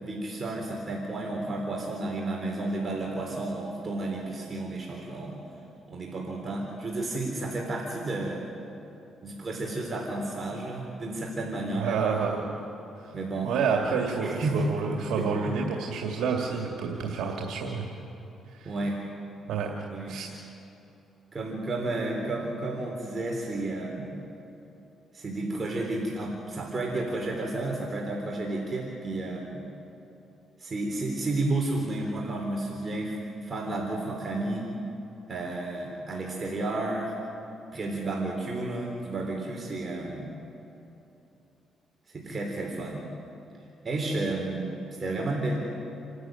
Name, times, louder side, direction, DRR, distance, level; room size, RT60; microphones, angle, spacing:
voice 1, 0.0-5.4 5.9-8.5 9.2-12.0 13.1-13.5 14.2-14.6 14.9-15.6 18.6-19.0 19.9-20.2 21.3-24.2 25.1-29.7 30.6-34.7 35.3-37.1 37.7-40.2 42.1-43.1 43.8-44.7 45.0-45.6, right 2 dB, 35° right, -1 dB, 3.7 m, -32 dB
voice 2, 11.7-12.5 13.4-17.9 18.5-18.7 19.5-19.7 20.1-20.3, right 5 dB, 80° right, 0 dB, 2.3 m, -29 dB
28.5 x 13.0 x 9.3 m, 3.0 s
cardioid pair, 90°, 0 cm